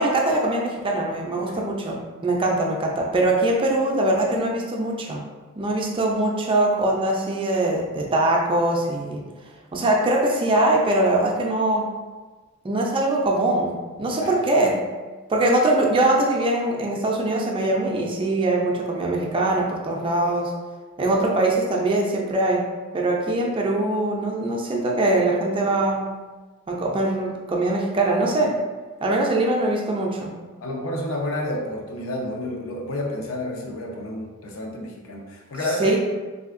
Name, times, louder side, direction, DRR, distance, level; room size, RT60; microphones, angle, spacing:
voice 1, 0.0-5.2 5.6-9.2 9.7-11.9 12.6-14.8 15.3-20.5 21.0-22.6 22.9-26.0 26.7-28.5 29.0-30.3 35.8-36.0, right 2 dB, 25° right, -1 dB, 0.4 m, -22 dB
voice 2, 1.4-1.7 14.1-14.4 30.6-36.0, left 1 dB, 75° left, 0 dB, 0.6 m, -30 dB
3.2 x 2.7 x 2.4 m, 1.3 s
head